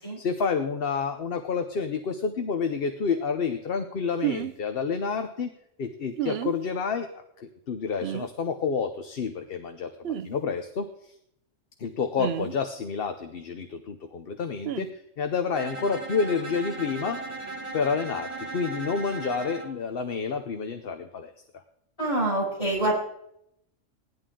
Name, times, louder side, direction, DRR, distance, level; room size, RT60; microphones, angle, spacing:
voice 1, 0.2-5.5 5.8-7.1 7.4-10.9 11.8-17.2 17.7-21.3, left 5 dB, 50° left, 7 dB, 0.9 m, -29 dB
sound 1, 4.2-4.5 6.2-6.6 8.0-8.3 10.0-10.3 12.2-12.5 14.6-14.9, right 11 dB, 60° right, 0.7 m, -30 dB
Bowed string instrument, 15.5-19.8, right 2 dB, 25° right, 1.6 m, -37 dB
voice 2, 22.0-22.9, right 1 dB, 25° left, -7 dB, 6.4 m, -26 dB
17.5 x 10.5 x 3.8 m, 0.76 s
omnidirectional pair, 1.3 m